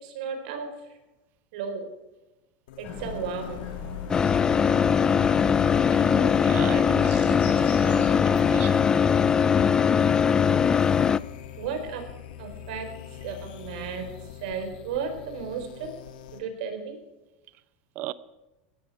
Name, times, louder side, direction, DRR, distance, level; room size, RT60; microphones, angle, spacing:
voice 1, 0.0-1.0 1.5-1.9 2.8-3.6 7.1-7.3 10.5-10.9 11.6-12.0 12.4-12.9 13.2-14.1 14.4-15.9 16.3-17.0, right 6 dB, 70° right, 4.3 m, -34 dB
sound 1, 2.7-16.4, left 9 dB, 85° left, 2.0 m, -42 dB
Bird, 2.8-8.1, left 4 dB, 35° left, 5.2 m, -39 dB
sound 2, 4.1-11.2, left 7 dB, 15° left, 0.4 m, -21 dB
voice 2, 6.4-8.9 17.9-18.1, right 14 dB, 40° right, 0.7 m, -37 dB
17.0 x 13.5 x 4.7 m
supercardioid pair, 155°, 5 cm